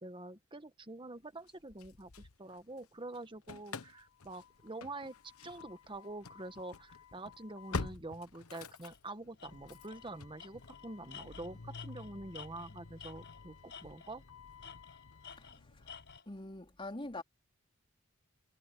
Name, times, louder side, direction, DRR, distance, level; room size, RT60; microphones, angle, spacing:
voice 1, 0.0-14.2, right 2 dB, 25° right, 1.4 m, -46 dB
Engine starting / Slam, 1.5-2.9 3.1-16.2, left 4 dB, 80° left, 1.2 m, -48 dB
Tools, 8.9-9.0 9.4-9.5 9.9-10.1 10.4-13.4 13.7-14.2 14.6-16.2, left 7 dB, 55° left, 6.6 m, -52 dB
voice 2, 15.4-16.0 16.3-17.2, left 2 dB, 25° left, 3.9 m, -45 dB
head